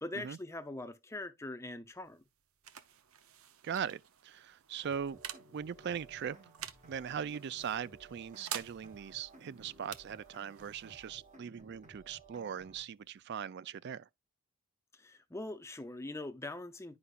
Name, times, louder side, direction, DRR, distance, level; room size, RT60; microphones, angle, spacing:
voice 1, 0.0-2.2 14.9-17.0, left 2 dB, 10° left, 0.6 m, -42 dB
sound 1, 1.9-13.2, right 9 dB, 70° right, 0.7 m, -50 dB
voice 2, 3.6-5.2 5.5-6.4 6.9-14.1, right 8 dB, 50° right, 0.3 m, -40 dB
sound 2, 4.8-12.8, right 2 dB, 35° right, 1.3 m, -57 dB
9.6 x 5.6 x 2.4 m
head